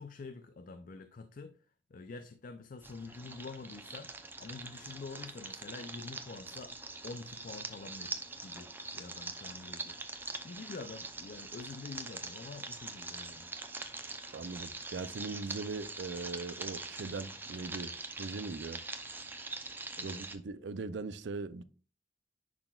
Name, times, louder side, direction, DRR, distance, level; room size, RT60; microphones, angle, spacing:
voice 1, 0.0-1.6 1.9-6.8 7.0-13.5 20.0-20.2, left 3 dB, 50° left, 0.4 m, -47 dB
sound 1, 2.8-20.4, right 3 dB, 10° right, 0.6 m, -43 dB
voice 2, 14.3-18.8 20.0-21.6, right 3 dB, 80° right, 0.5 m, -40 dB
10.5 x 3.9 x 2.4 m
head